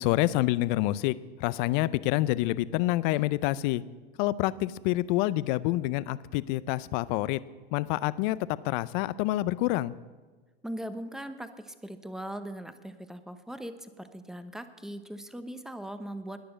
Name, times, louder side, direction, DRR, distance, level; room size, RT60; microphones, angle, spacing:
voice 1, 0.0-3.8 4.2-7.4 7.7-8.4 8.6-9.9, left 17 dB, 50° left, 18 dB, 0.6 m, -27 dB
voice 2, 10.6-16.4, right 1 dB, ahead, 10 dB, 0.9 m, -40 dB
20.5 x 6.9 x 6.4 m, 1.3 s
hypercardioid pair, 105°, 31 cm